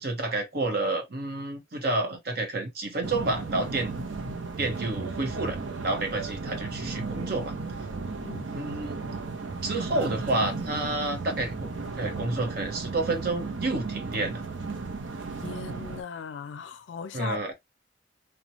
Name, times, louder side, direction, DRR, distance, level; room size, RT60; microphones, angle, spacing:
voice 1, 0.0-3.9 4.6-5.6 5.8-7.5 8.5-9.0 9.6-11.7 11.9-14.4 17.1-17.5, right 2 dB, 55° right, 0.9 m, -29 dB
sound 1, 3.0-16.0, right 3 dB, 80° right, 0.6 m, -35 dB
voice 2, 15.4-17.4, left 6 dB, 75° left, 0.4 m, -38 dB
3.0 x 2.2 x 2.6 m
head